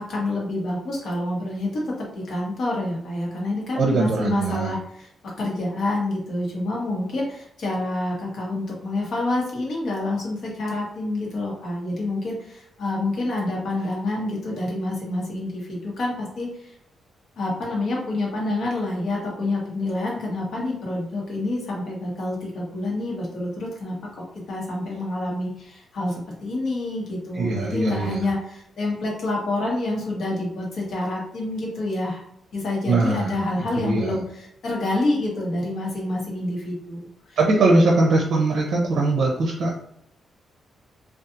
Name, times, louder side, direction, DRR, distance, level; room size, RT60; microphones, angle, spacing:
voice 1, 0.0-16.7 17.4-24.0 24.5-32.2 32.5-37.7, left 2 dB, 65° left, -3 dB, 1.0 m, -28 dB
voice 2, 3.8-4.7 27.3-28.2 32.9-34.2 37.4-39.8, right 2 dB, 60° right, -1 dB, 0.5 m, -21 dB
2.6 x 2.3 x 2.5 m, 0.72 s
cardioid pair, 135°, 0 cm